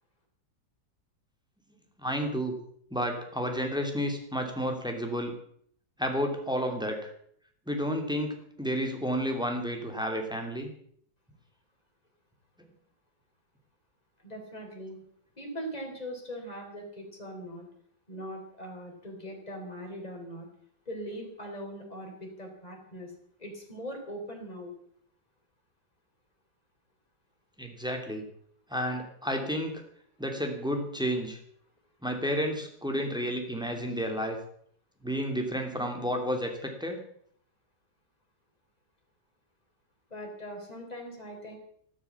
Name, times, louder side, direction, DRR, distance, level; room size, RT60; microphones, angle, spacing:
voice 1, 2.0-2.5 2.9-5.3 6.0-7.1 7.7-10.7 27.6-28.2 28.7-29.8 30.2-31.4 32.0-34.4 35.0-37.0, equal, ahead, 3 dB, 2.7 m, -31 dB
voice 2, 14.2-15.0 15.4-17.7 18.1-20.5 20.9-23.1 23.4-24.7 40.1-41.6, equal, 20° left, 1 dB, 4.2 m, -41 dB
14.0 x 12.0 x 7.2 m, 0.64 s
omnidirectional pair, 1.9 m